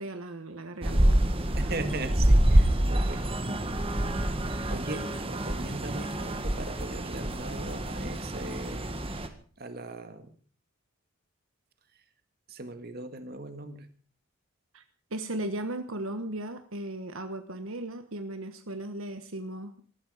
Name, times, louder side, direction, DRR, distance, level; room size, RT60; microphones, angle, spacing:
voice 1, 0.0-1.7 14.7-14.8 15.1-19.8, right 1 dB, 70° right, 8 dB, 1.3 m, -37 dB
sound 1, 0.8-9.3, right 1 dB, 25° right, 1.6 m, -26 dB
voice 2, 1.6-3.2 4.7-8.9 9.6-10.3 12.5-13.9, right 2 dB, 45° right, 8 dB, 1.9 m, -39 dB
19.0 x 14.0 x 5.0 m, 0.43 s
head